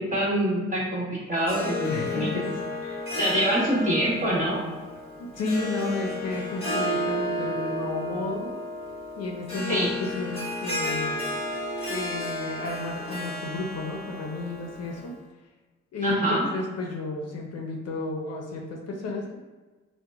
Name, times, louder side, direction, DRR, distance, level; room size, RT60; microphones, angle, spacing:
voice 1, 0.1-2.3 3.2-4.6 9.7-9.9 16.0-16.5, right 1 dB, 25° right, -7 dB, 1.5 m, -25 dB
Harp, 1.4-15.1, left 1 dB, 20° left, 1.3 m, -32 dB
voice 2, 1.8-2.5 5.2-8.5 9.2-11.4 11.9-15.1 15.9-19.4, left 2 dB, 60° left, 1 dB, 0.6 m, -32 dB
2.9 x 2.2 x 3.4 m, 1.3 s
cardioid pair, 70°, 29 cm